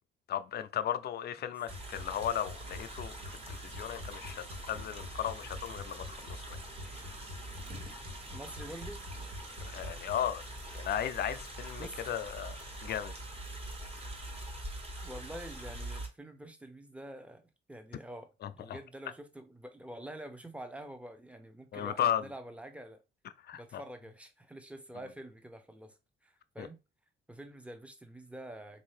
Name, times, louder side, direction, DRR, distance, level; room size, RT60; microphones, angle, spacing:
voice 1, 0.3-6.6 9.7-10.4 10.7-13.1 18.4-18.8 21.7-22.2 23.5-23.8 26.6-26.7, left 10 dB, 60° left, 0.4 m, -35 dB
sound 1, 1.7-16.1, right 1 dB, 30° right, 1.4 m, -44 dB
sound 2, 1.7-10.2, left 2 dB, 90° right, 1.1 m, -48 dB
sound 3, 2.8-14.6, right 1 dB, 55° right, 1.1 m, -56 dB
voice 2, 8.3-9.0 11.8-12.0 15.0-23.0 23.5-26.0 26.2-26.8 27.3-28.8, right 1 dB, 5° right, 0.7 m, -47 dB
3.7 x 2.7 x 3.2 m
cardioid pair, 75°, 19 cm